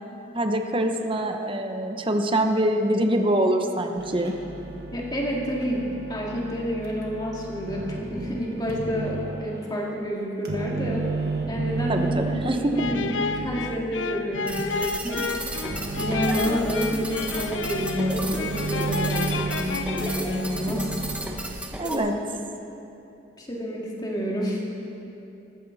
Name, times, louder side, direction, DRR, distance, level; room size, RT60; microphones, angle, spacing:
voice 1, 0.3-4.3 11.9-12.7 21.8-22.1, right 1 dB, 30° right, 5 dB, 1.0 m, -24 dB
sound 1, 4.0-9.7 10.4-21.2, right 3 dB, 55° right, 1.8 m, -33 dB
voice 2, 4.9-11.1 11.5-15.3 16.0-20.9 21.3-21.5 21.9-22.2 23.4-24.6, equal, 20° left, -3 dB, 2.5 m, -29 dB
sound 2, 12.8-20.8, left 5 dB, 90° left, 0.6 m, -32 dB
sound 3, 14.5-22.0, right 1 dB, 5° right, 1.1 m, -34 dB
19.0 x 14.5 x 4.2 m, 2.8 s
head